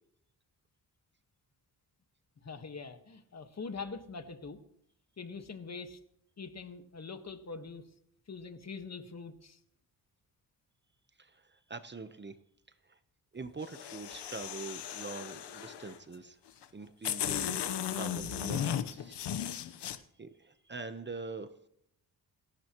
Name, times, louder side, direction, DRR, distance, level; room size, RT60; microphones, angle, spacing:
voice 1, 2.4-4.6 5.2-6.0 6.4-7.9 8.3-9.6, left 4 dB, 40° left, 8 dB, 1.6 m, -43 dB
voice 2, 11.2-12.3 12.9-13.0 13.3-16.4 16.7-17.6 17.9-19.2 19.4-21.5, right 3 dB, 25° right, 10 dB, 1.0 m, -44 dB
sound 1, 13.6-16.0 16.6-16.7 17.0-20.0, left 9 dB, 90° left, 1.1 m, -36 dB
29.0 x 12.0 x 3.1 m, 0.71 s
cardioid pair, 110°, 40 cm